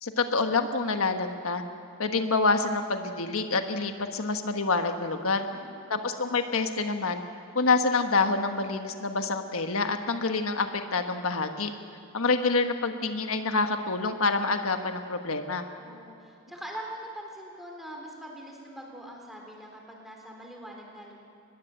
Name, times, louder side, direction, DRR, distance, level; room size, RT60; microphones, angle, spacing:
voice 1, 0.0-1.6 2.0-5.5 5.9-7.2 7.5-11.7 12.1-15.6, left 3 dB, 85° left, 6 dB, 1.4 m, -27 dB
voice 2, 5.4-5.7 15.8-21.2, right 1 dB, ahead, 0 dB, 3.8 m, -43 dB
24.0 x 20.5 x 7.8 m, 2.7 s
head